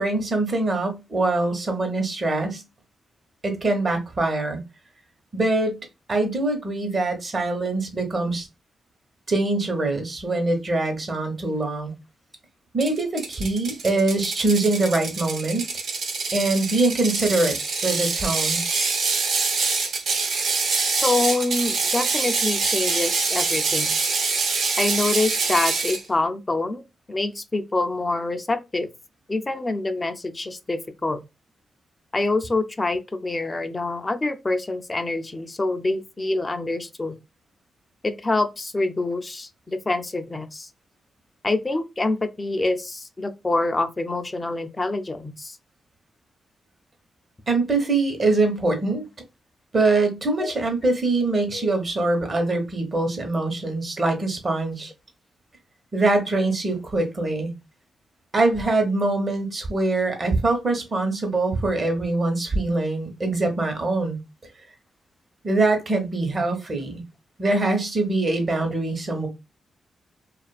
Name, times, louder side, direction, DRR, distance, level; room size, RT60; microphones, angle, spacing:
voice 1, 0.0-2.6 3.4-4.6 5.3-5.8 6.1-8.5 9.3-11.9 12.7-15.6 16.3-17.6 17.8-18.6 47.5-49.1 49.7-54.9 55.9-57.5 58.3-64.2 65.4-67.0 67.4-69.3, right 2 dB, 40° right, 0.9 m, -23 dB
Ratchet pawl, 12.8-26.0, right 4 dB, 75° right, 0.6 m, -25 dB
voice 2, 21.0-23.9 24.8-26.8 27.1-28.9 29.3-31.2 32.1-37.2 38.0-40.7 41.4-45.6 50.4-50.5 51.5-51.7, left 2 dB, 25° left, 0.4 m, -26 dB
2.5 x 2.4 x 2.3 m
cardioid pair, 80°, 0 cm